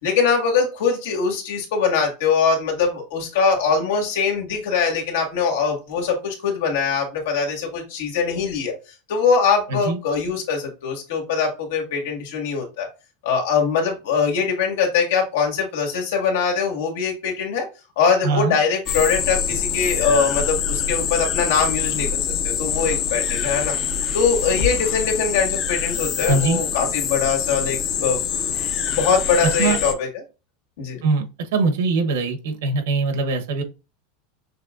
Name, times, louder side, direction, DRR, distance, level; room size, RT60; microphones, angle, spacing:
voice 1, 0.0-8.7 9.1-12.9 13.2-17.6 18.0-23.7 24.1-28.6 28.8-30.1 30.8-31.0, left 5 dB, 85° left, 1.8 m, -22 dB
voice 2, 18.2-18.6 26.3-26.6 29.6-29.8 31.0-31.2 31.5-33.6, right 3 dB, 80° right, 1.0 m, -21 dB
sound 1, 18.9-29.9, left 7 dB, 35° left, 0.5 m, -25 dB
6.4 x 3.2 x 2.5 m
supercardioid pair, 170°, 0 cm